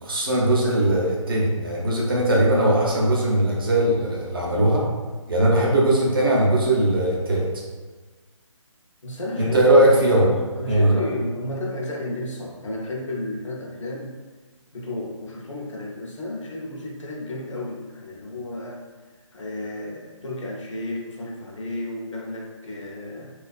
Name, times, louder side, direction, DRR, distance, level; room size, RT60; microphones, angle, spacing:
voice 1, 0.0-4.8 5.3-7.5 9.4-10.3 10.7-11.0, right 1 dB, 45° right, -3 dB, 0.6 m, -19 dB
voice 2, 9.0-14.2 14.7-18.8 19.3-23.3, left 1 dB, 65° left, -1 dB, 0.6 m, -32 dB
2.3 x 2.3 x 2.3 m, 1.3 s
figure-of-eight pair, 160°, 17 cm